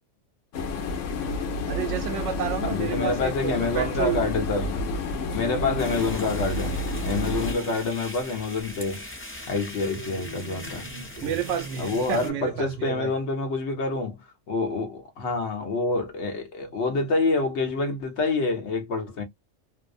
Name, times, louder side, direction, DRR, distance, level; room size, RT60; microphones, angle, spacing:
sound 1, 0.5-7.5, left 2 dB, 90° left, 1.0 m, -30 dB
voice 1, 1.7-4.2 5.4-5.8 7.5-7.8 11.2-13.1, right 9 dB, 75° right, 0.9 m, -31 dB
voice 2, 2.6-4.8 5.3-9.0 9.5-10.9 11.2-11.4 11.8-14.2 14.5-19.2, left 3 dB, 65° left, 1.0 m, -27 dB
sound 2, 5.8-12.3, left 1 dB, 15° left, 0.5 m, -41 dB
sound 3, 9.8-13.3, right 3 dB, 35° right, 0.9 m, -41 dB
2.6 x 2.1 x 2.4 m
omnidirectional pair, 1.3 m